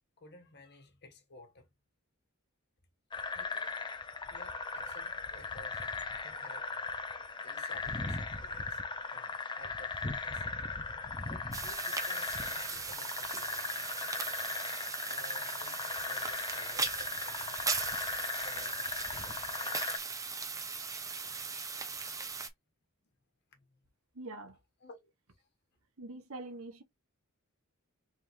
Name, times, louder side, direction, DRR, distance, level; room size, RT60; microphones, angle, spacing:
voice 1, 0.2-1.7 3.3-3.8 4.3-7.0 7.4-8.8 9.1-10.5 11.2-13.9 15.1-19.8 23.5-23.8 24.8-25.5, left 1 dB, 55° left, 1.3 m, -56 dB
sound 1, 3.1-20.0, left 4 dB, 20° left, 0.7 m, -38 dB
sound 2, 11.5-22.5, right 4 dB, 15° right, 0.7 m, -38 dB
voice 2, 24.1-24.6 26.0-26.8, right 2 dB, 75° right, 1.3 m, -44 dB
4.8 x 3.6 x 2.7 m
head